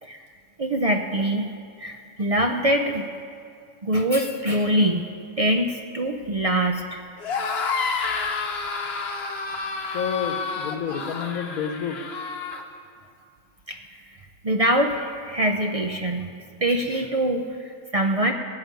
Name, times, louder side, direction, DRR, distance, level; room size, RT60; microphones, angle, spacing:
voice 1, 0.6-1.5 1.8-3.1 3.8-5.1 5.4-7.0 13.7-13.8 14.4-16.3 16.6-18.3, right 1 dB, 45° right, 4 dB, 0.4 m, -23 dB
sound 1, 7.2-12.6, left 4 dB, 50° left, 1.1 m, -29 dB
voice 2, 9.8-12.1, left 6 dB, 85° left, 5 dB, 1.3 m, -29 dB
16.5 x 6.0 x 9.1 m, 2.3 s
omnidirectional pair, 1.5 m